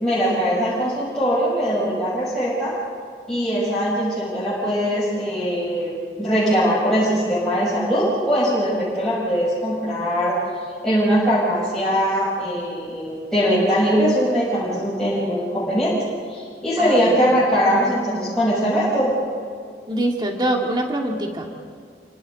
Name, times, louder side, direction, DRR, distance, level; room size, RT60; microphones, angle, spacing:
voice 1, 0.0-2.7 3.3-10.4 10.8-16.0 16.3-19.1, equal, 5° left, -10 dB, 7.1 m, -21 dB
voice 2, 16.8-17.1 19.9-21.5, right 1 dB, 25° right, 0 dB, 2.3 m, -24 dB
30.0 x 26.5 x 4.1 m, 2.2 s
head